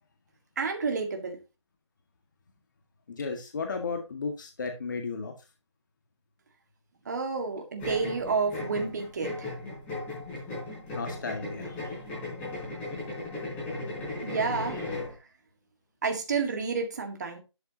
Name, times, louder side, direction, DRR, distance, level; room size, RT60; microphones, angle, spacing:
voice 1, 0.6-1.4 7.1-9.6 14.2-14.8 16.0-17.4, right 4 dB, 35° right, 1.9 m, -30 dB
voice 2, 3.1-5.3 10.9-12.0, left 4 dB, 40° left, 1.9 m, -34 dB
sound 1, 7.8-15.2, left 2 dB, 10° left, 4.5 m, -36 dB
12.0 x 7.9 x 2.9 m
figure-of-eight pair, 165°, 15 cm